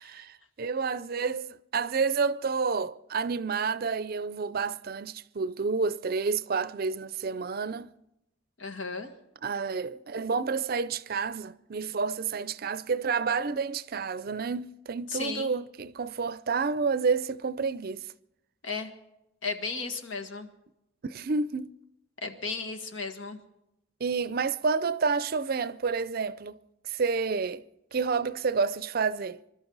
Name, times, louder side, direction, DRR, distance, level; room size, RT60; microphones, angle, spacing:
voice 1, 0.0-7.9 9.4-18.1 21.0-21.7 24.0-26.6 26.8-27.6 27.9-29.4, right 5 dB, 50° right, 0.5 m, -29 dB
voice 2, 8.6-9.1 15.1-15.5 18.6-18.9 19.4-20.5 22.2-23.4, left 4 dB, 85° left, 1.7 m, -34 dB
26.5 x 13.0 x 4.0 m
head